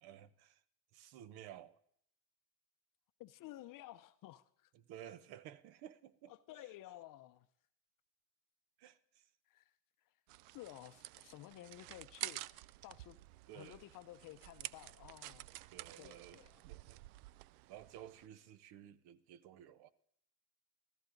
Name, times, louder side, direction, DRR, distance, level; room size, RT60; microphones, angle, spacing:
voice 1, 0.0-0.6 0.9-1.8 4.7-6.3 8.8-9.3 13.5-13.8 15.7-17.0 17.7-19.9, right 11 dB, 55° right, 1.0 m, -54 dB
voice 2, 3.2-4.7 6.3-7.5 9.5-9.7 10.5-12.5 12.8-13.2 13.5-15.5 16.0-16.6, left 15 dB, 45° left, 0.6 m, -53 dB
sound 1, 10.3-18.3, right 18 dB, 75° right, 0.5 m, -50 dB
15.0 x 14.5 x 3.9 m
supercardioid pair, 110°, 45 cm